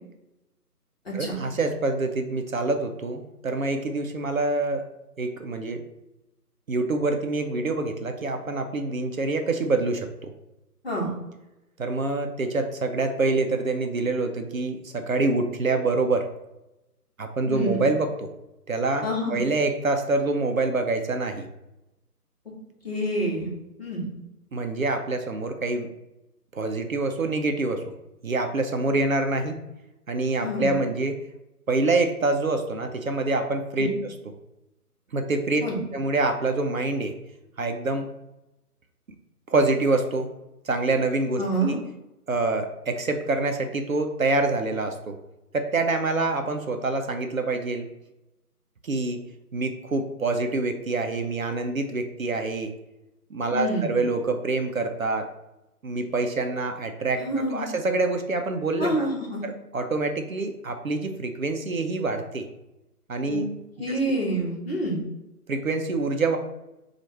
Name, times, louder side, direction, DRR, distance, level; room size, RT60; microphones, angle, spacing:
voice 1, 1.1-4.8 5.2-5.8 6.7-10.3 11.8-16.2 17.2-18.3 18.7-21.5 24.5-25.9 26.5-27.8 28.2-29.6 30.1-31.1 31.7-34.1 35.1-35.6 35.9-37.1 37.6-38.1 39.5-40.3 40.7-41.8 42.3-45.2 45.5-47.9 48.8-49.2 49.5-52.7 53.3-55.3 55.8-59.1 59.4-62.5 63.1-63.5 63.9-64.0 65.5-66.4, right 3 dB, 60° right, 5 dB, 0.5 m, -26 dB
voice 2, 17.4-17.8 19.0-19.4 22.8-23.5 23.8-24.1 30.4-30.7 33.7-33.9 35.6-35.8 41.4-41.8 53.5-53.9 57.2-57.7 58.8-59.4 63.3-63.4 63.8-65.0, right 1 dB, 40° left, -3 dB, 1.1 m, -27 dB
4.3 x 2.4 x 4.2 m, 0.94 s
figure-of-eight pair, 155°, 48 cm